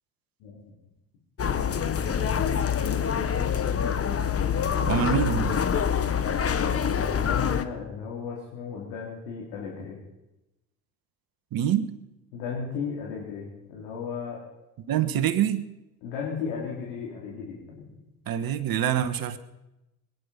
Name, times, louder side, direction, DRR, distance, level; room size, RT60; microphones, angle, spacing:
sound 1, 1.4-7.6, left 8 dB, 30° left, 1.3 m, -26 dB
voice 1, 1.5-3.9 6.7-10.0 12.3-14.4 16.0-18.0, left 6 dB, 70° left, -3 dB, 3.8 m, -36 dB
voice 2, 4.8-5.6 11.5-11.9 14.9-15.6 18.3-19.4, right 10 dB, 45° right, 11 dB, 1.4 m, -25 dB
22.0 x 10.5 x 5.7 m, 0.95 s
hypercardioid pair, 65°, 47 cm